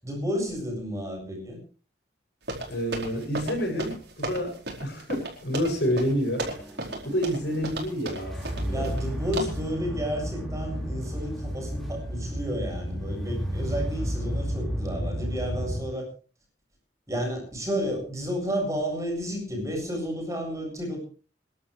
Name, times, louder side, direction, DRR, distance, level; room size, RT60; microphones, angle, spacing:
voice 1, 0.0-1.6 8.7-16.1 17.1-21.0, equal, 20° right, 1 dB, 7.8 m, -31 dB
sound 1, 2.5-9.1 9.3-9.7, right 2 dB, 70° right, 4.8 m, -36 dB
voice 2, 2.7-6.5 7.0-9.0, equal, 75° left, 2 dB, 7.1 m, -29 dB
sound 2, 6.4-15.8, equal, ahead, 4.8 m, -32 dB
28.5 x 12.0 x 3.3 m, 0.36 s
head